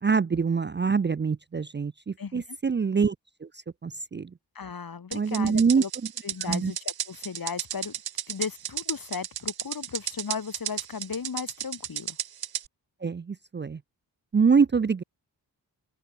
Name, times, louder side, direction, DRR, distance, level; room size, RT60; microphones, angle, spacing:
voice 1, 0.0-3.2 3.4-3.5 3.8-4.3 5.1-5.8 6.5-6.7 13.0-13.8 14.3-15.0, right 5 dB, 30° right, 0.5 m, -24 dB
voice 2, 2.2-2.6 4.5-5.9 6.2-8.0 8.3-12.2, left 6 dB, 60° left, 2.4 m, -36 dB
sound 1, 5.1-12.7, right 10 dB, 70° right, 0.7 m, -33 dB
open air
cardioid pair, 65°, 40 cm